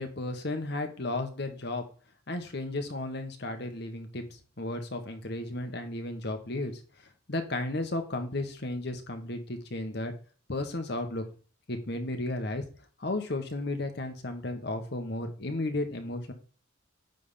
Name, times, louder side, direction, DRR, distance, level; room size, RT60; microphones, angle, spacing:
voice 1, 0.0-1.8 2.3-4.2 4.6-6.7 7.3-10.1 10.5-11.2 11.7-12.6 13.0-16.3, left 2 dB, 55° left, 6 dB, 1.2 m, -33 dB
9.2 x 3.5 x 5.7 m, 0.39 s
head